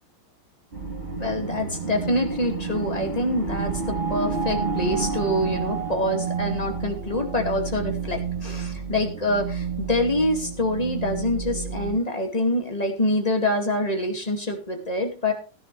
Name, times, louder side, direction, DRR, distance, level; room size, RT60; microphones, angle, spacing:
sound 1, 0.7-11.9, right 5 dB, 25° right, 3.8 m, -30 dB
voice 1, 1.1-15.3, left 1 dB, 20° left, 3 dB, 2.2 m, -26 dB
16.5 x 10.5 x 3.3 m, 0.34 s
omnidirectional pair, 2.2 m